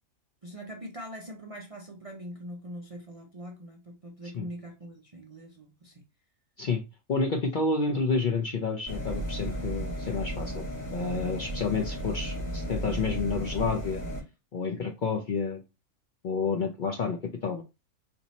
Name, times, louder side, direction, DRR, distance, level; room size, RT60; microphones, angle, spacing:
voice 1, 0.4-6.0 9.5-9.7, equal, 45° right, 0.5 m, -43 dB
voice 2, 7.1-10.6 10.9-14.0 14.5-15.6 16.2-17.6, left 4 dB, 55° left, 0.6 m, -29 dB
sound 1, 8.9-14.2, equal, 40° left, 2.3 m, -34 dB
4.3 x 2.7 x 4.0 m
omnidirectional pair, 1.4 m